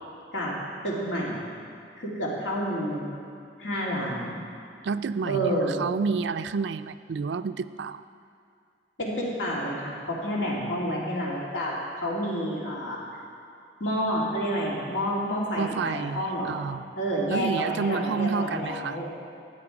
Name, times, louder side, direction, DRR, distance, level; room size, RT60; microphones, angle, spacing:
voice 1, 0.8-1.4 1.9-3.1 3.6-4.4 5.2-5.8 9.0-13.0 13.8-16.6 17.0-19.0, equal, 80° left, -4 dB, 2.7 m, -29 dB
voice 2, 4.8-8.0 15.6-16.9 17.3-19.0, right 5 dB, 70° right, 12 dB, 0.4 m, -29 dB
13.5 x 8.7 x 4.8 m, 2.4 s
head